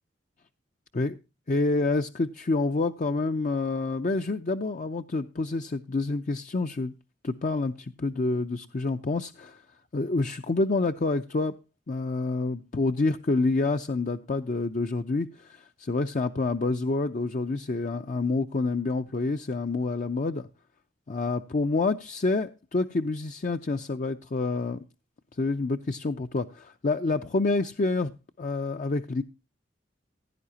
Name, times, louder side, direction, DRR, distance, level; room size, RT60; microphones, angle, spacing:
voice 1, 1.5-6.9 7.2-9.6 9.9-11.5 11.9-20.5 21.1-24.8 25.4-28.1 28.4-29.2, left 3 dB, 45° left, 0.6 m, -28 dB
16.0 x 10.5 x 2.8 m
head